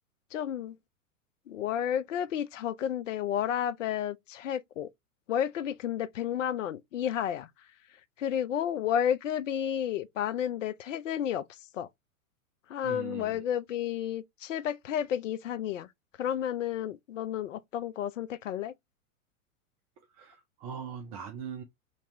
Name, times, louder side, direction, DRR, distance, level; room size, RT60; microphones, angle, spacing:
voice 1, 0.3-0.8 1.5-4.9 5.3-7.5 8.2-11.4 11.7-11.9 12.7-15.9 16.2-18.7, left 10 dB, 65° left, 0.5 m, -31 dB
voice 2, 12.8-13.4 20.1-21.6, right 7 dB, 25° right, 0.5 m, -41 dB
2.9 x 2.8 x 3.0 m
figure-of-eight pair, 100°, 42 cm